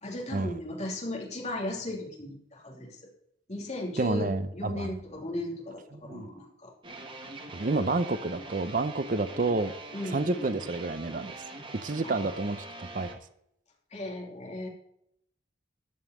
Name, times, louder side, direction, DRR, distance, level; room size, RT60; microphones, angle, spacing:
voice 1, 0.0-3.0 3.5-6.7 9.9-10.4 12.0-12.2 13.9-14.7, left 1 dB, 35° left, -1 dB, 2.9 m, -36 dB
voice 2, 4.0-4.9 5.9-6.3 7.5-9.7 10.0-11.3 11.8-13.2, right 3 dB, 45° right, 12 dB, 0.6 m, -29 dB
sound 1, 6.8-13.2, right 2 dB, 25° right, 1.5 m, -43 dB
13.5 x 5.6 x 7.9 m, 0.74 s
head